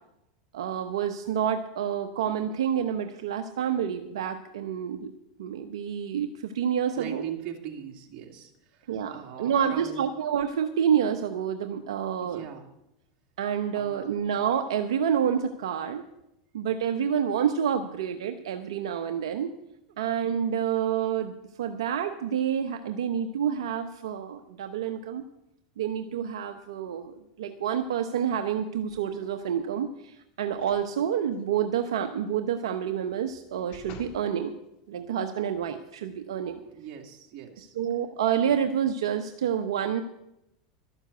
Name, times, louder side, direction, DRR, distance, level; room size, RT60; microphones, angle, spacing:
voice 1, 0.5-5.1 5.4-7.2 8.9-12.4 13.4-16.0 16.5-19.5 20.0-25.2 25.8-34.5 34.9-36.6 37.8-40.0, right 8 dB, 80° right, 7 dB, 0.9 m, -28 dB
voice 2, 7.0-10.0 12.2-12.7 13.7-14.2 36.6-37.8, right 9 dB, 50° right, 2 dB, 2.5 m, -40 dB
sound 1, 28.9-29.4 30.5-30.9 31.3-31.4 33.0-34.3 34.9-35.0, left 4 dB, 50° left, 2.2 m, -50 dB
12.5 x 7.2 x 8.0 m, 0.85 s
hypercardioid pair, 105°, 3 cm